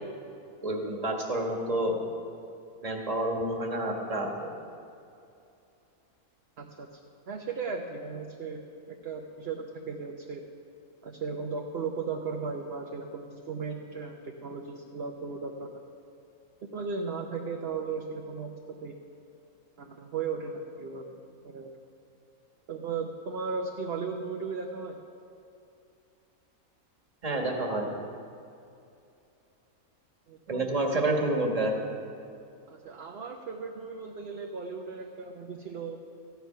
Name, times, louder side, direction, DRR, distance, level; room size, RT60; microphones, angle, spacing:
voice 1, 0.6-2.0 2.8-4.5 27.2-27.9 30.5-31.7, right 1 dB, 25° right, 1 dB, 1.4 m, -29 dB
voice 2, 6.6-7.0 7.3-8.6 9.0-10.4 11.0-15.7 16.7-18.5 18.8-19.0 19.8-21.2 21.4-21.7 22.7-25.0 30.3-30.9 32.7-36.0, right 5 dB, 50° right, 2 dB, 0.9 m, -36 dB
14.5 x 9.4 x 5.7 m, 2.6 s
omnidirectional pair, 1.5 m